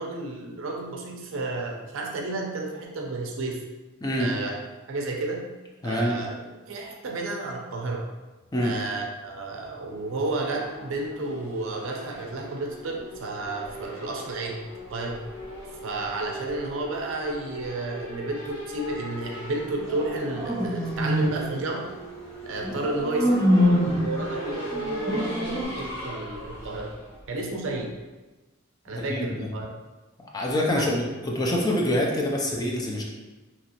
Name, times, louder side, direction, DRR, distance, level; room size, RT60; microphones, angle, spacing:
voice 1, 0.0-3.6 4.2-4.5 4.9-5.4 5.8-6.4 6.7-8.1 8.6-14.6 14.9-15.2 15.8-21.9 22.5-27.0 27.3-27.9 28.8-29.7 30.8-30.9, right 2 dB, 70° right, 0 dB, 0.5 m, -31 dB
voice 2, 4.0-4.3 5.8-6.2 8.5-8.7 28.9-29.5 30.3-33.0, left 1 dB, 20° left, -2 dB, 0.4 m, -26 dB
Race car auto racing / Accelerating revving vroom, 9.8-28.0, equal, 80° left, 1.2 m, -40 dB
sound 1, 19.8-21.4 22.6-24.1 25.0-25.7, equal, 15° right, 1.0 m, -24 dB
2.9 x 2.5 x 2.8 m, 1.2 s
head